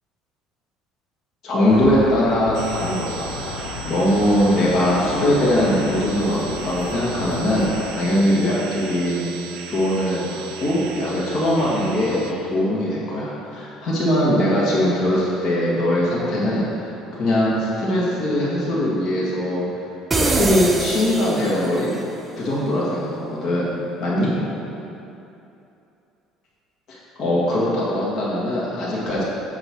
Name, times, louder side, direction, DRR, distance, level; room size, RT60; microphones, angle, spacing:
voice 1, 1.4-3.6 3.9-9.2 9.7-19.7 20.2-21.9 22.3-23.7 24.0-24.3 26.9-29.2, left 1 dB, 45° left, -6 dB, 1.4 m, -21 dB
sound 1, 1.7-7.9, left 5 dB, 80° left, 0.6 m, -32 dB
sound 2, 2.5-12.3, right 7 dB, 80° right, 0.6 m, -37 dB
sound 3, 20.1-21.9, right 2 dB, 15° right, 0.4 m, -23 dB
8.3 x 2.9 x 6.0 m, 2.8 s
cardioid pair, 155°, 0 cm